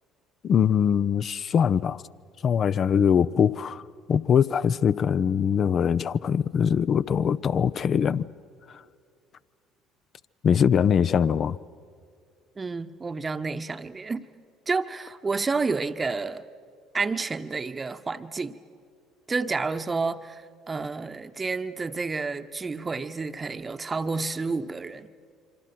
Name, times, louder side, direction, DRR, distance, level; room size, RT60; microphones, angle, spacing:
voice 1, 0.4-2.0 2.4-3.8 4.1-8.3 10.4-11.6, left 7 dB, 45° left, 0.6 m, -22 dB
voice 2, 12.6-14.3 14.7-16.4 16.9-18.6 19.3-25.1, right 4 dB, 25° right, 1.0 m, -30 dB
26.5 x 25.0 x 6.0 m
hypercardioid pair, 55°, 0 cm